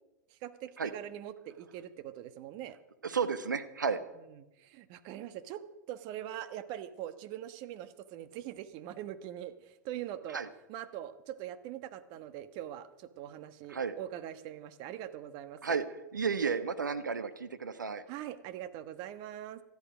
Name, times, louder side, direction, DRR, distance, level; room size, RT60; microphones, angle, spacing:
voice 1, 0.3-2.8 4.3-5.6 5.9-10.4 10.7-15.8 18.1-19.6, right 11 dB, 45° right, 11 dB, 1.3 m, -42 dB
voice 2, 3.0-4.0 10.3-10.5 13.7-13.9 15.6-15.8 16.1-18.0, right 5 dB, 85° right, 11 dB, 1.2 m, -32 dB
18.5 x 13.5 x 5.1 m, 0.95 s
hypercardioid pair, 105°, 10 cm